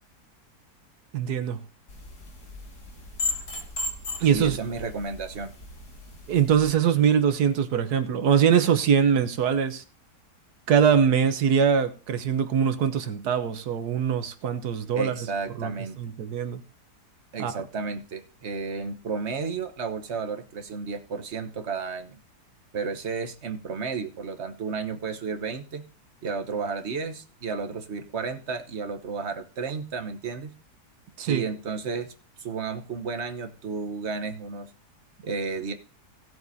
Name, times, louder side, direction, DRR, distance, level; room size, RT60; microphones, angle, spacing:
voice 1, 1.1-1.6 4.2-4.6 6.3-9.8 10.7-15.1 15.6-15.7 16.0-16.6 17.4-17.5 31.2-31.4, right 7 dB, 75° right, 1.5 m, -22 dB
sound 1, 1.9-6.7, left 2 dB, 75° left, 2.7 m, -36 dB
voice 2, 4.3-5.5 14.9-16.0 17.3-22.2 22.7-25.8 26.2-30.5 31.3-32.1 32.4-34.7 35.2-35.7, right 5 dB, 45° right, 1.2 m, -32 dB
17.5 x 7.8 x 2.7 m
omnidirectional pair, 1.7 m